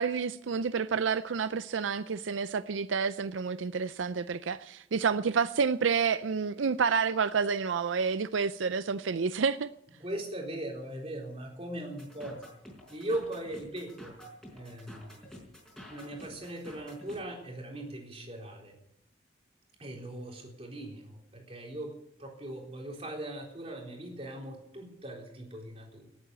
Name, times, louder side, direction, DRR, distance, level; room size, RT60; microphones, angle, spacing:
voice 1, 0.0-9.7, right 5 dB, 80° right, 0.5 m, -29 dB
voice 2, 10.0-12.4 12.9-14.2 14.5-15.4 15.9-18.8 19.8-26.1, right 1 dB, 30° right, 3.8 m, -39 dB
sound 1, 12.0-17.2, equal, 5° left, 4.9 m, -49 dB
18.5 x 8.9 x 8.2 m
head